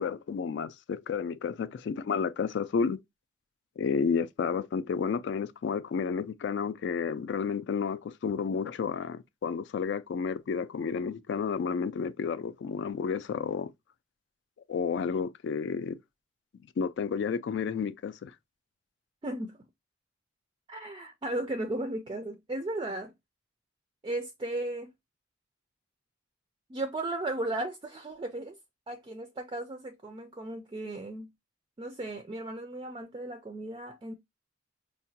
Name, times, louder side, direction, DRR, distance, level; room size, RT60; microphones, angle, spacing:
voice 1, 0.0-3.0 3.8-13.7 14.7-16.0 16.8-18.3, left 6 dB, 60° left, 0.3 m, -31 dB
voice 2, 19.2-19.6 20.7-23.1 24.0-24.9 26.7-28.6 28.9-31.3 31.8-34.1, right 1 dB, 25° right, 0.3 m, -35 dB
4.6 x 2.1 x 2.7 m
head